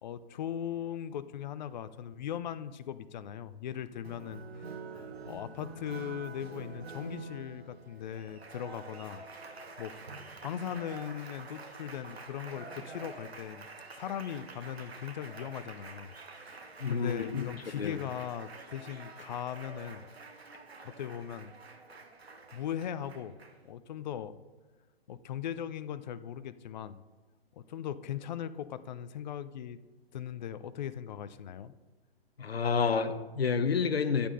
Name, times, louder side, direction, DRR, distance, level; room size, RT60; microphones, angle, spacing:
voice 1, 0.0-4.6 5.3-9.2 9.8-10.0 10.4-20.1 20.8-21.5 22.5-23.4 23.6-24.4 25.1-27.0 27.5-29.8 30.1-31.7, left 9 dB, 45° left, 14 dB, 0.5 m, -39 dB
Applause, 4.0-23.7, right 3 dB, 80° right, 1.2 m, -47 dB
voice 2, 16.8-17.5 17.8-18.0 32.4-34.3, left 5 dB, 75° left, 11 dB, 0.9 m, -29 dB
11.0 x 8.5 x 3.9 m, 1.2 s
figure-of-eight pair, 120°, 31 cm